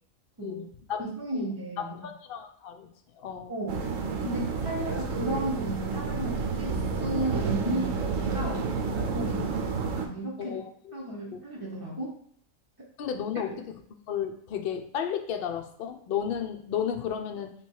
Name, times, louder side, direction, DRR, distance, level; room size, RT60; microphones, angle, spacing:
voice 1, 0.4-1.0 1.3-1.5 1.8-2.9 3.2-3.5 9.2-9.5 10.4-10.6 11.3-11.4 13.0-13.8 14.1-17.5, left 8 dB, 70° left, 6 dB, 0.5 m, -33 dB
voice 2, 1.0-2.0 3.5-3.8 4.2-8.6 9.1-9.5 10.0-10.6 10.9-12.1, right 1 dB, 25° right, -5 dB, 0.5 m, -34 dB
sound 1, 3.7-10.1, right 5 dB, 70° right, 1.0 m, -30 dB
3.4 x 2.9 x 4.5 m, 0.62 s
omnidirectional pair, 1.5 m